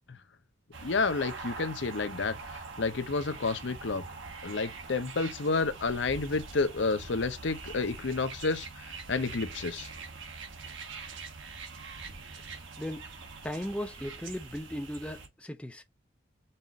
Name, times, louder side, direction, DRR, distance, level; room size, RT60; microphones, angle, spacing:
sound 1, 0.7-15.3, right 4 dB, 65° right, 1.3 m, -44 dB
voice 1, 0.8-4.0 4.4-9.9, left 4 dB, 60° left, 0.6 m, -30 dB
voice 2, 13.4-15.8, equal, 5° left, 0.4 m, -37 dB
5.5 x 2.5 x 3.9 m
head